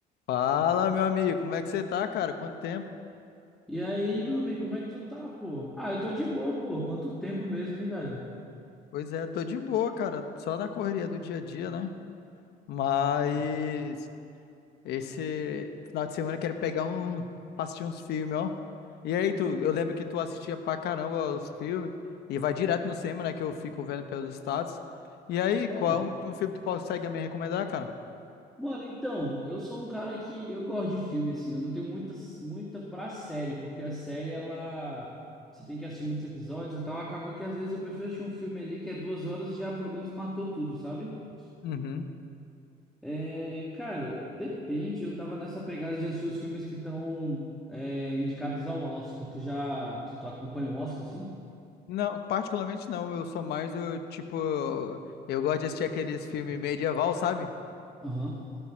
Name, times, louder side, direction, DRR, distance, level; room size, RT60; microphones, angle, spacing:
voice 1, 0.3-2.8 8.9-11.9 12.7-14.0 14.8-17.2 17.6-18.5 19.0-21.9 22.3-24.8 25.3-27.9 41.6-42.0 51.9-55.0 55.3-57.5, left 8 dB, 75° left, 8 dB, 1.1 m, -30 dB
voice 2, 3.7-8.3 25.6-26.0 28.6-35.1 35.5-41.2 43.0-51.3 56.3-56.6 58.0-58.4, equal, ahead, -4 dB, 2.0 m, -34 dB
17.0 x 10.5 x 6.3 m, 2.5 s
cardioid pair, 110°, 17 cm